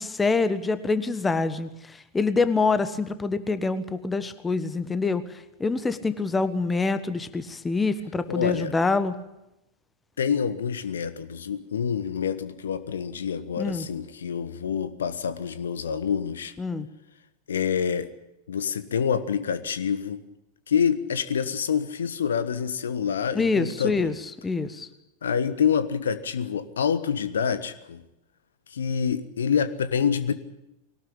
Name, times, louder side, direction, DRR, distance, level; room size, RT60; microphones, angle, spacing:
voice 1, 0.0-5.2 5.6-9.1 13.6-13.9 16.6-16.9 23.3-24.1 24.4-24.9, left 3 dB, 15° left, 13 dB, 1.3 m, -25 dB
voice 2, 8.3-8.7 10.2-16.5 17.5-18.1 18.5-20.2 20.7-24.1 25.2-28.0 28.7-30.3, left 7 dB, 65° left, 13 dB, 1.3 m, -27 dB
21.5 x 18.5 x 8.8 m, 0.88 s
figure-of-eight pair, 90°, 0 cm